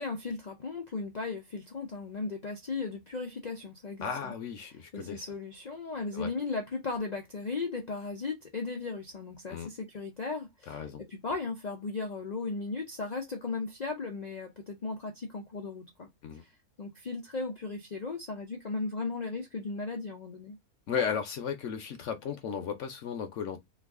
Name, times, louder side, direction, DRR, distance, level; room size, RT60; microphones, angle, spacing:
voice 1, 0.0-4.3 4.9-16.1 16.4-16.5 16.8-20.6, left 3 dB, 85° left, 0.3 m, -36 dB
voice 2, 4.0-5.2 6.1-6.3 9.5-9.7 10.7-11.0 16.2-16.4 20.9-23.6, left 7 dB, 65° left, 0.8 m, -35 dB
3.0 x 2.4 x 3.5 m
omnidirectional pair, 1.7 m